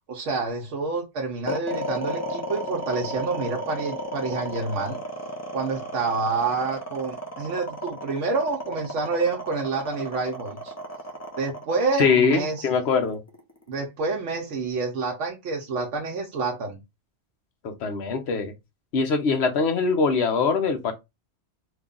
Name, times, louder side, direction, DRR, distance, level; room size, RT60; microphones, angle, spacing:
voice 1, 0.1-5.0 5.5-10.7 11.4-12.7 13.7-16.8, right 4 dB, 85° right, 1.0 m, -28 dB
sound 1, 1.5-13.7, equal, 20° left, 0.6 m, -33 dB
voice 2, 12.0-13.2 17.6-18.5 18.9-20.9, left 5 dB, 70° left, 1.0 m, -22 dB
3.1 x 2.3 x 3.7 m
omnidirectional pair, 1.2 m